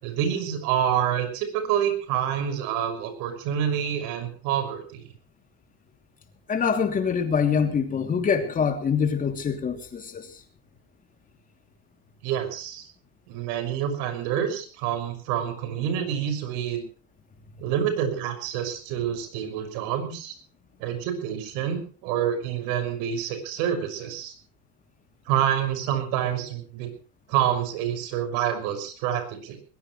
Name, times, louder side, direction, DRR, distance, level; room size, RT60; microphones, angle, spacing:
voice 1, 0.0-5.1 12.2-12.9 13.3-16.9 17.6-20.3 20.8-24.3 25.3-26.9 27.3-29.6, right 9 dB, 65° right, 6.1 m, -27 dB
voice 2, 6.5-10.3, left 6 dB, 25° left, 2.9 m, -24 dB
21.0 x 21.0 x 3.2 m
cardioid pair, 160°, 36 cm